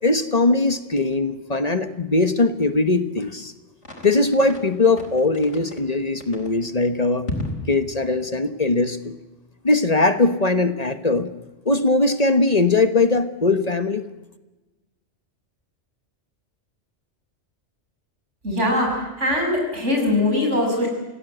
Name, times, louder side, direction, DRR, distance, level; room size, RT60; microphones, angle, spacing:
voice 1, 0.0-3.5 4.0-7.3 7.7-9.1 9.6-11.3 11.6-14.0, left 3 dB, 35° left, 10 dB, 1.2 m, -20 dB
sound 1, 3.8-4.7 5.0-5.8 6.2-6.6 7.3-7.7, left 1 dB, 80° left, 4.5 m, -32 dB
voice 2, 18.4-20.9, left 1 dB, 85° right, 1 dB, 6.8 m, -21 dB
28.0 x 17.0 x 7.9 m, 1.1 s
omnidirectional pair, 1.2 m